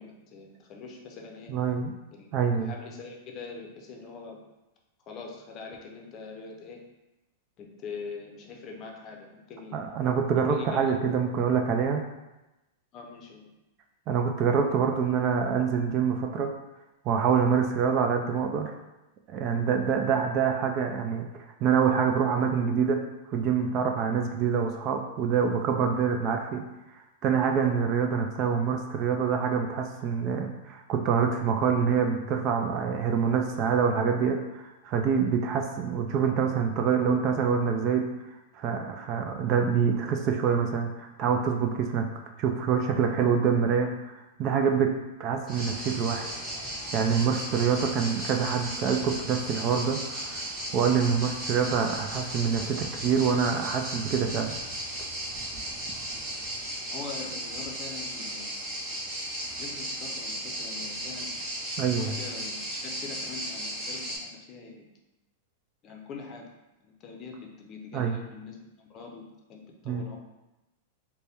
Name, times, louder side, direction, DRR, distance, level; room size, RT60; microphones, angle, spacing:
voice 1, 0.0-1.6 2.1-2.3 2.6-4.4 5.1-6.8 7.6-9.8 10.5-10.9 12.9-13.5 56.9-58.6 59.1-59.3 59.6-61.4 62.0-64.8 65.8-66.5 66.8-70.2, left 5 dB, 30° left, 1 dB, 0.6 m, -43 dB
voice 2, 1.5-1.9 2.3-2.7 9.7-12.0 14.1-16.5 17.1-18.7 19.3-23.0 23.3-26.6 27.2-38.1 38.5-42.1 42.4-44.9 45.2-46.3 46.9-50.4 50.7-54.5 61.8-62.1 67.9-68.2 69.9-70.0, right 6 dB, 35° right, 4 dB, 0.3 m, -26 dB
sound 1, 45.5-64.2, right 1 dB, 15° right, 1.1 m, -36 dB
4.2 x 2.2 x 3.4 m, 1.0 s
supercardioid pair, 150°, 0 cm